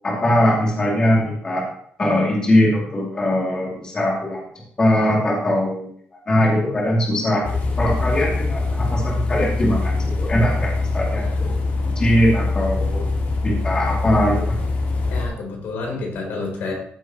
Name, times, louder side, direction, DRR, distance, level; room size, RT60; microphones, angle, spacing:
voice 1, 0.0-1.7 2.0-4.4 4.8-11.6 12.0-13.0 13.4-14.6, equal, 25° left, -3 dB, 2.7 m, -21 dB
sound 1, 7.4-15.3, left 3 dB, 55° left, 2.2 m, -23 dB
voice 2, 11.1-11.9 15.1-16.7, left 3 dB, 85° left, 0 dB, 3.8 m, -30 dB
15.0 x 7.6 x 3.0 m, 0.62 s
cardioid pair, 165°, 4 cm